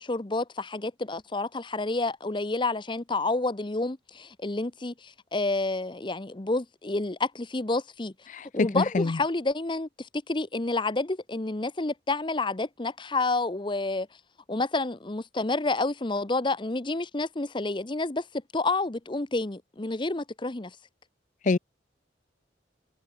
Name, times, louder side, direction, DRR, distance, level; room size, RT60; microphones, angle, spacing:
voice 1, 0.0-8.1 8.5-14.1 14.5-18.3 18.5-20.8, left 2 dB, 25° left, 0.8 m, -29 dB
voice 2, 8.3-9.2 21.5-21.6, left 3 dB, 40° left, 0.5 m, -25 dB
head